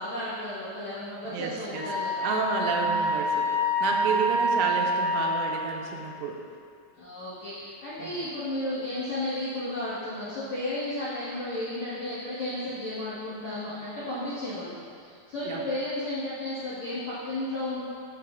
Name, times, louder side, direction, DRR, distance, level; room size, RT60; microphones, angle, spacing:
voice 1, 0.0-2.2 2.8-3.0 4.5-4.7 7.0-17.8, left 1 dB, 90° left, -11 dB, 1.5 m, -33 dB
voice 2, 1.3-1.9 2.2-6.4 8.0-8.2 15.5-15.6, right 5 dB, 85° right, 1 dB, 3.3 m, -31 dB
Wind instrument woodwind instrument, 1.7-5.6, equal, 55° left, 2.4 m, -27 dB
12.0 x 6.0 x 2.4 m, 2.3 s
omnidirectional pair, 5.7 m